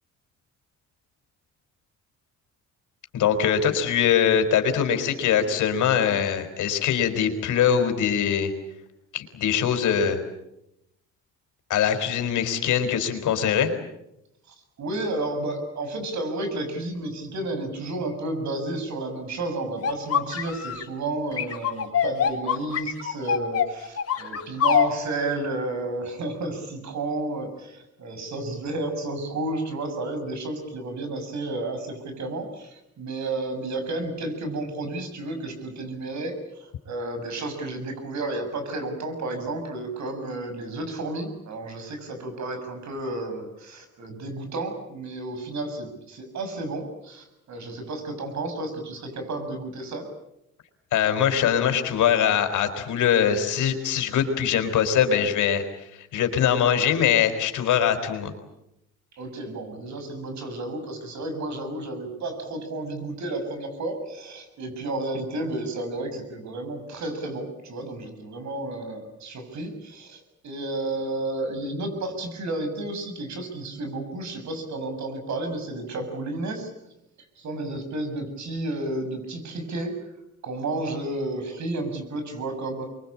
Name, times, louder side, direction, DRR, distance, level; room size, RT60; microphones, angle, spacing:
voice 1, 3.1-8.5 9.1-10.2 11.7-13.7 50.9-55.6 56.0-58.3, left 8 dB, 80° left, 7 dB, 4.1 m, -22 dB
voice 2, 14.5-50.1 59.2-76.7 77.4-79.9 80.4-82.9, right 2 dB, 65° right, 7 dB, 7.0 m, -32 dB
sound 1, 19.8-20.8 21.4-24.9, left 8 dB, 50° left, 4.3 m, -24 dB
25.5 x 23.0 x 8.6 m, 0.84 s
cardioid pair, 90°, 30 cm